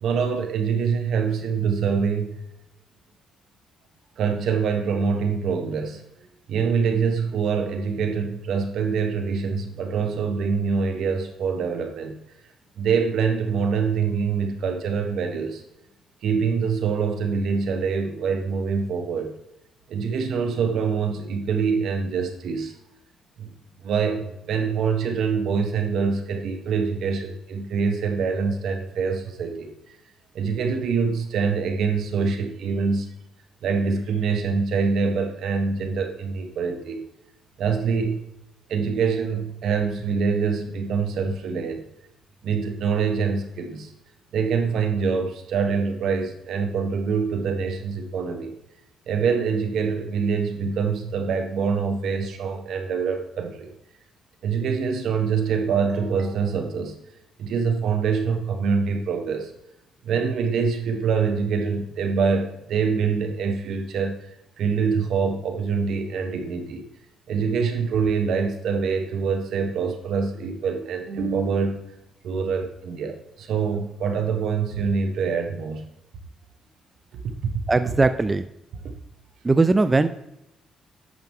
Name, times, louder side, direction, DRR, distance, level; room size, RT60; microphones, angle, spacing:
voice 1, 0.0-2.4 4.2-6.0 6.5-12.2 12.8-15.6 16.2-19.3 19.9-22.7 23.4-23.5 23.8-30.0 30.3-33.1 33.6-37.0 37.6-38.2 38.7-41.8 42.4-43.9 44.3-48.5 49.1-53.7 54.4-56.9 57.4-59.5 60.0-66.8 67.3-72.0 72.2-75.8 77.4-77.5, right 5 dB, 75° right, 5 dB, 1.4 m, -25 dB
voice 2, 77.7-78.4 79.4-80.1, right 3 dB, 25° right, 11 dB, 0.4 m, -19 dB
9.5 x 6.0 x 3.7 m, 0.85 s
cardioid pair, 90°, 0 cm